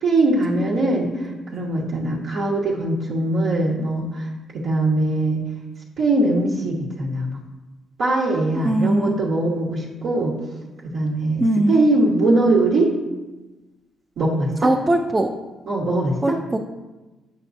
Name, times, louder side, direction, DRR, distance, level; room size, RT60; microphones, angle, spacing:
voice 1, 0.0-4.3 4.5-5.4 6.0-7.4 8.0-10.3 10.8-12.9 14.2-14.7 15.7-16.3, right 2 dB, 70° right, -5 dB, 1.0 m, -21 dB
voice 2, 8.5-9.1 11.4-11.9 14.6-15.3 16.2-16.6, right 1 dB, 20° right, 2 dB, 0.4 m, -20 dB
8.2 x 5.8 x 2.6 m, 1.1 s
cardioid pair, 90°, 0 cm